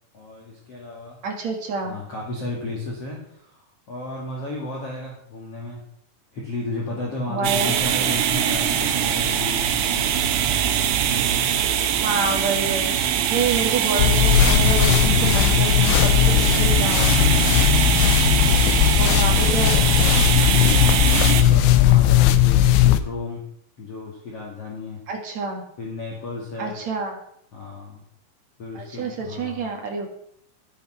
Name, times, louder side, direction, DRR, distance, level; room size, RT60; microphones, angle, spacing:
voice 1, 0.1-1.2 1.8-5.8 6.3-10.3 13.4-13.7 17.9-20.8 21.3-22.7 23.0-23.4 23.8-25.0 25.8-26.8 27.5-28.0 28.6-29.7, left 2 dB, 45° left, -3 dB, 2.4 m, -34 dB
voice 2, 1.2-1.9 7.3-7.7 12.0-17.2 19.0-19.7 25.1-25.6 26.6-27.2 28.7-30.1, right 4 dB, 50° right, 2 dB, 2.3 m, -28 dB
sound 1, 7.4-21.4, right 9 dB, 75° right, 3.3 m, -22 dB
sound 2, 14.0-23.0, left 11 dB, 85° left, 3.0 m, -17 dB
12.0 x 9.0 x 5.8 m, 0.73 s
omnidirectional pair, 5.2 m